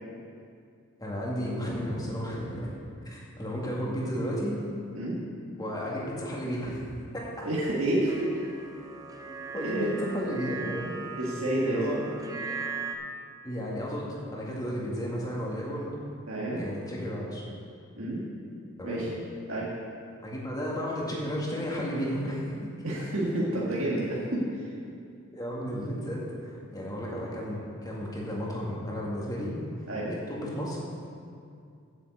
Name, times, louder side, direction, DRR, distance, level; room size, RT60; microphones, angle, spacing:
voice 1, 1.0-2.7 3.1-4.6 5.6-6.8 7.1-7.5 9.3-10.9 11.6-12.0 13.4-15.9 16.5-17.4 18.8-19.1 20.2-22.7 25.3-29.6 30.1-30.8, equal, 20° left, -4 dB, 2.0 m, -33 dB
voice 2, 7.4-8.4 9.6-9.9 11.2-12.0 16.3-16.6 18.0-18.2 18.8-19.1 19.5-19.7 22.8-24.7 29.9-30.1, right 1 dB, 70° right, -6 dB, 1.7 m, -29 dB
sound 1, 8.1-12.9, right 5 dB, 15° right, 0.6 m, -39 dB
7.8 x 7.5 x 8.1 m, 2.4 s
head